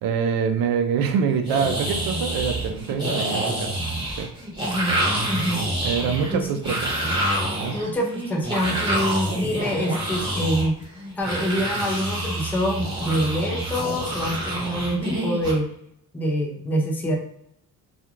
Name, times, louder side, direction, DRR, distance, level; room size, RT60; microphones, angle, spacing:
voice 1, 0.0-3.7 4.2-4.3 5.8-6.9 7.6-7.8, right 6 dB, 65° right, 6 dB, 0.5 m, -25 dB
sound 1, 1.4-15.5, right 1 dB, 10° right, 0.9 m, -27 dB
voice 2, 4.6-5.0 5.3-5.7 6.3-6.5 7.7-10.8 11.2-15.7 16.1-17.2, equal, 5° left, -2 dB, 0.5 m, -25 dB
2.4 x 2.2 x 3.0 m, 0.72 s
cardioid pair, 115°, 38 cm